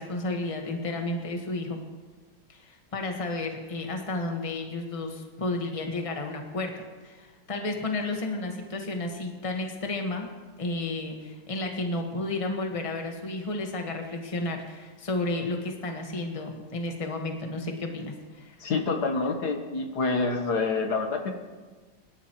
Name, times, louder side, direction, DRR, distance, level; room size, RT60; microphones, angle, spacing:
voice 1, 0.0-1.8 2.5-10.3 10.6-18.6, left 2 dB, 20° left, 2 dB, 1.3 m, -32 dB
voice 2, 18.6-21.3, left 3 dB, 65° left, 3 dB, 1.7 m, -27 dB
22.5 x 12.0 x 3.0 m, 1.4 s
omnidirectional pair, 1.9 m